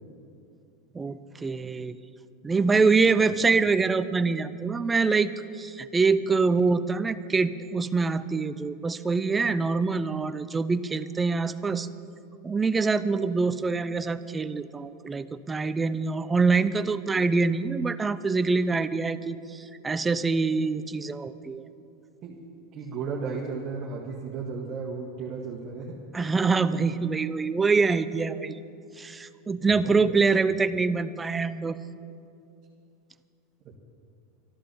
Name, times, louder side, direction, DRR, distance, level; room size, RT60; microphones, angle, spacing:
voice 1, 0.9-2.0 2.4-11.9 12.4-21.6 26.1-28.6 29.0-31.8, right 4 dB, 15° right, 13 dB, 0.5 m, -25 dB
voice 2, 22.7-26.0 29.8-30.2 33.6-33.8, right 5 dB, 35° right, -3 dB, 1.9 m, -34 dB
13.0 x 11.5 x 7.1 m, 2.6 s
supercardioid pair, 120°, 0 cm